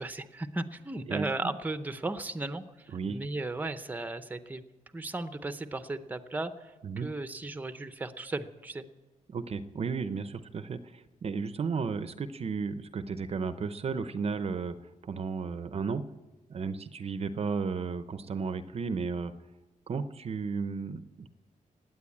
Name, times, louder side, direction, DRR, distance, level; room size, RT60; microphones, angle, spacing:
voice 1, 0.0-4.6 4.9-8.9, right 2 dB, 10° right, 10 dB, 0.7 m, -36 dB
voice 2, 1.1-1.5 2.9-3.2 6.8-7.1 9.3-14.8 15.0-16.1 16.5-19.3 19.9-21.3, right 5 dB, 45° right, 12 dB, 0.7 m, -34 dB
17.5 x 9.3 x 8.5 m, 1.1 s
wide cardioid pair, 140°, 14 cm